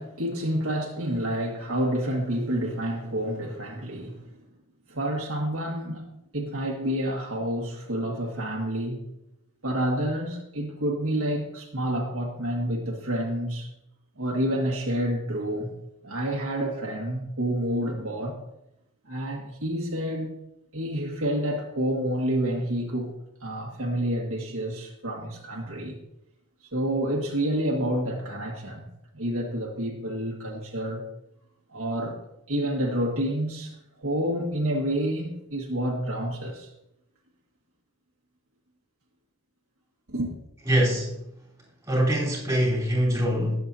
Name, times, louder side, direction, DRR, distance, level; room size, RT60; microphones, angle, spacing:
voice 1, 0.0-4.2 4.9-9.0 9.6-13.7 14.2-15.7 16.0-18.4 19.1-20.3 20.7-23.1 23.4-26.0 26.7-28.9 29.1-31.0 31.7-32.2 32.5-33.7 34.0-36.7 40.1-40.3, right 1 dB, 65° right, -2 dB, 1.8 m, -28 dB
voice 2, 40.7-41.1 41.9-43.6, equal, 15° right, -5 dB, 4.0 m, -23 dB
19.5 x 7.8 x 2.8 m, 0.84 s
head